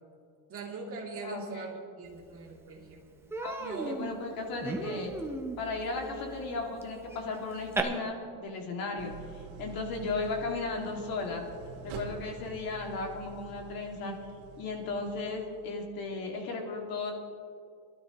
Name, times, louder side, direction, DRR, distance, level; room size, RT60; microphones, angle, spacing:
voice 1, 0.5-3.1 3.6-4.1, right 4 dB, 30° right, -3 dB, 2.6 m, -41 dB
voice 2, 1.2-1.7 3.4-5.1 5.6-11.4 11.8-14.1 14.6-17.1, left 3 dB, 50° left, 1 dB, 2.3 m, -35 dB
Human voice, 2.3-2.4 2.7-2.9 3.3-7.8, right 2 dB, 5° right, 0.6 m, -37 dB
Idling, 9.0-16.0, right 4 dB, 70° right, 1.8 m, -47 dB
22.5 x 12.5 x 3.0 m, 2.3 s
cardioid pair, 160°, 44 cm